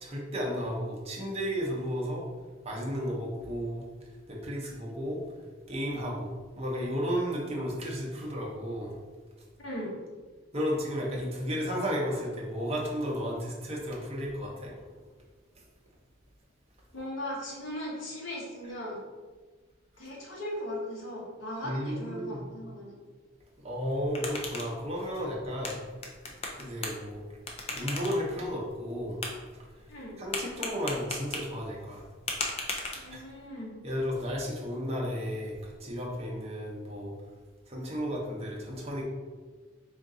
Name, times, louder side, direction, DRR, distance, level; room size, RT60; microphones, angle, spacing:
voice 1, 0.0-2.2 2.6-3.8 4.3-5.2 5.7-9.0 10.5-14.7 21.6-22.4 23.6-25.8 26.6-27.2 27.7-29.2 30.2-32.1 33.1-33.2 33.8-37.1 37.7-39.0, equal, 30° right, -3 dB, 0.8 m, -33 dB
voice 2, 9.6-9.9 16.9-19.0 20.0-23.0 29.9-30.2 32.9-33.8, left 1 dB, 70° left, -3 dB, 1.1 m, -38 dB
sound 1, 23.8-33.5, left 2 dB, 30° left, 0.5 m, -39 dB
3.8 x 2.6 x 3.7 m, 1.4 s
head